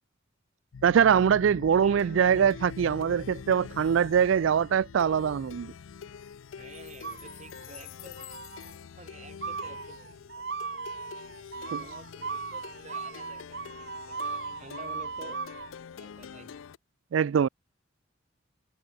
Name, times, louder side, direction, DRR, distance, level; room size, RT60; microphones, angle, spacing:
Plucked string instrument, 0.7-16.8, left 6 dB, 75° left, 0.4 m, -45 dB
voice 1, 0.8-5.7 11.7-11.8 17.1-17.5, right 7 dB, 70° right, 0.3 m, -23 dB
voice 2, 1.7-2.5 6.5-8.3 9.0-10.2 11.4-15.4 16.0-16.7, right 3 dB, 35° right, 1.7 m, -50 dB
sound 1, 7.0-7.8 8.2-8.7 9.4-15.7, right 5 dB, 55° right, 1.6 m, -38 dB
head